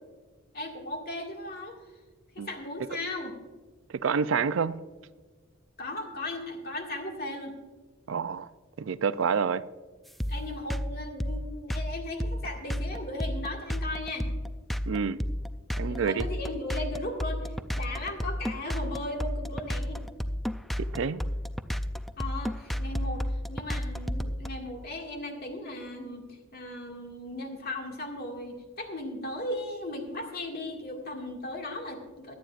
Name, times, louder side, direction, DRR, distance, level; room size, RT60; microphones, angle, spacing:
voice 1, 0.5-1.8 2.4-3.4 5.8-7.5 10.3-14.3 15.8-20.0 22.2-32.3, left 1 dB, 50° left, 2.0 m, -37 dB
voice 2, 4.0-4.8 8.1-8.5 8.8-9.6 14.9-15.2 15.8-16.3 20.9-21.2, right 6 dB, 70° right, 0.4 m, -28 dB
sound 1, 10.2-24.5, equal, ahead, 0.3 m, -31 dB
17.0 x 11.5 x 2.5 m
head